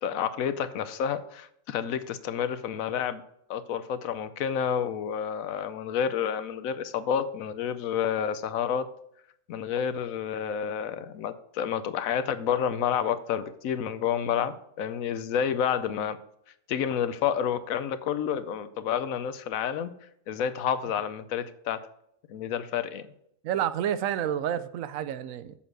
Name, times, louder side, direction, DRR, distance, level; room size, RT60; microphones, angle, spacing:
voice 1, 0.0-3.2 3.5-8.9 9.5-16.2 16.7-19.9 20.3-21.8 22.3-23.1, left 8 dB, 90° left, 1.1 m, -29 dB
voice 2, 23.4-25.5, right 10 dB, 80° right, 1.0 m, -29 dB
7.3 x 7.1 x 4.7 m
omnidirectional pair, 1.4 m